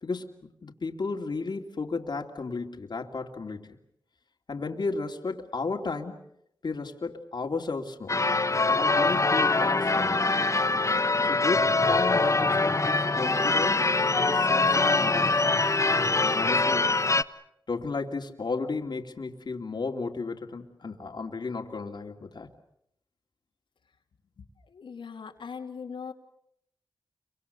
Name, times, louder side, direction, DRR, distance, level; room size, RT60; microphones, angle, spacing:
voice 1, 0.0-3.8 4.5-6.2 6.6-8.2 8.7-10.2 11.2-13.8 14.2-15.5 16.2-16.9 17.7-22.5, left 4 dB, 60° left, 3 dB, 2.8 m, -34 dB
Church bell / Car / Alarm, 8.1-17.2, left 3 dB, 40° left, 1.1 m, -24 dB
voice 2, 24.4-26.1, left 6 dB, 90° left, 0 dB, 2.9 m, -40 dB
29.5 x 25.0 x 6.9 m, 0.75 s
cardioid pair, 50°, 8 cm